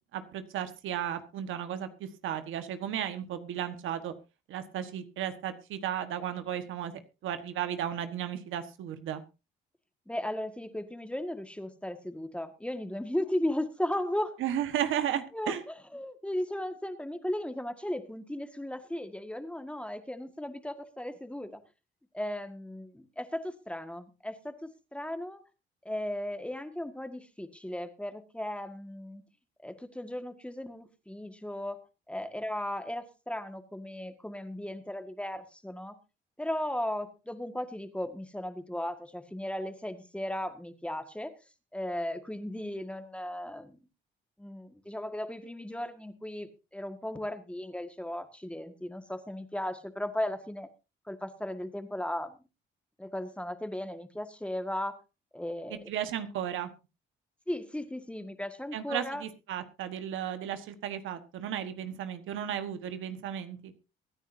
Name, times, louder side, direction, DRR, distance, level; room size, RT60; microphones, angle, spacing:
voice 1, 0.1-4.1 4.5-6.9 7.2-9.2 14.4-15.6 55.7-56.7 58.7-63.7, right 10 dB, 85° right, 9 dB, 1.5 m, -34 dB
voice 2, 10.1-14.4 15.3-21.6 22.1-25.4 25.9-29.2 29.6-36.0 36.4-41.3 41.7-43.8 44.4-50.7 51.1-52.4 53.0-55.0 55.3-55.8 57.5-59.2, left 1 dB, 5° left, 8 dB, 1.8 m, -36 dB
23.5 x 9.9 x 2.7 m, 0.29 s
cardioid pair, 90°, 20 cm